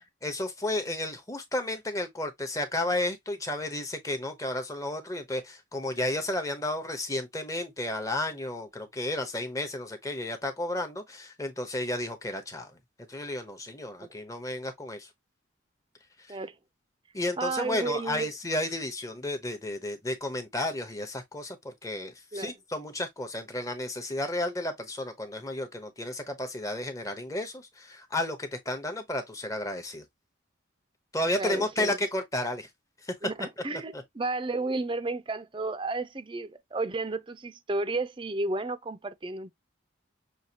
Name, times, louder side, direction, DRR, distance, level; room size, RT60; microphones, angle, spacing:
voice 1, 0.2-12.7 13.1-15.1 16.3-16.4 17.1-30.0 31.1-32.7 33.0-33.3 33.9-34.0, left 1 dB, 15° left, 0.9 m, -32 dB
voice 2, 17.4-18.3 22.3-22.5 31.4-32.0 33.2-39.5, right 2 dB, 25° right, 0.5 m, -32 dB
6.4 x 2.4 x 2.8 m
head